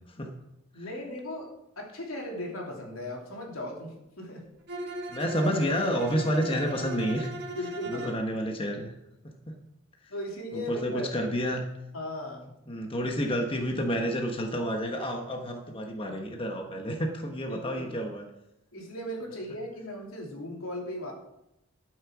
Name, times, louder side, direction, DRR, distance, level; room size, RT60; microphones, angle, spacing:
voice 1, 0.7-1.5 1.8-4.5 7.5-8.2 10.1-11.3 11.9-12.5 17.5-17.9 18.7-21.1, left 1 dB, 90° left, 0 dB, 3.1 m, -37 dB
Bowed string instrument, 4.7-8.2, right 1 dB, 55° right, 1.8 m, -38 dB
voice 2, 5.1-7.3 7.9-8.9 9.2-9.6 10.5-11.6 12.7-18.2, equal, 25° left, 2 dB, 1.2 m, -30 dB
12.5 x 6.5 x 6.1 m, 0.86 s
head